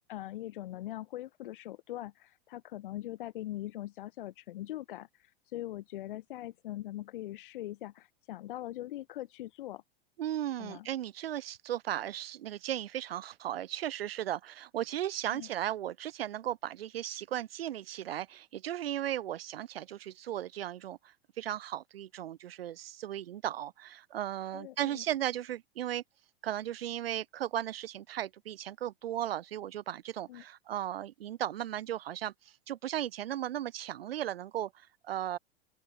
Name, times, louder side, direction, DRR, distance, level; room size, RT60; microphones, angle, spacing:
voice 1, 0.0-9.8 10.6-10.9 15.3-15.5 24.5-25.0 30.3-30.4, left 14 dB, 60° left, 0.8 m, -42 dB
voice 2, 10.2-26.0 26.4-35.4, right 12 dB, 75° right, 0.5 m, -36 dB
open air
figure-of-eight pair, 100°, 30 cm